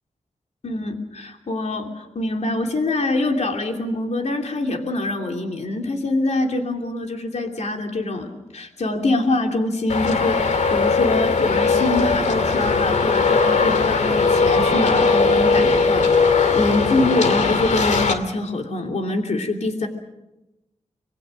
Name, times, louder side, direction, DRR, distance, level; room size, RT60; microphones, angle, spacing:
voice 1, 0.6-19.9, left 2 dB, 70° left, 3 dB, 3.0 m, -24 dB
Traffic noise roadway noise, 9.9-18.1, left 4 dB, 90° left, 2.2 m, -19 dB
26.5 x 22.0 x 6.5 m, 0.96 s
wide cardioid pair, 90°, 12 cm